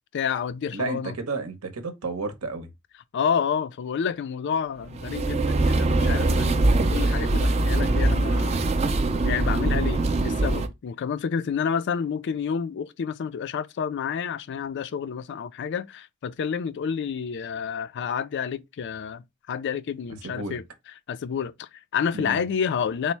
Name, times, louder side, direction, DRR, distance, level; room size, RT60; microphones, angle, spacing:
voice 1, 0.1-1.1 3.1-8.6 9.2-19.2 19.5-23.1, left 7 dB, 50° left, 0.3 m, -29 dB
voice 2, 0.7-2.7 20.2-20.6 22.1-22.4, right 3 dB, 75° right, 0.8 m, -32 dB
sound 1, 4.9-10.7, right 2 dB, 30° right, 0.4 m, -22 dB
4.0 x 2.0 x 4.4 m
head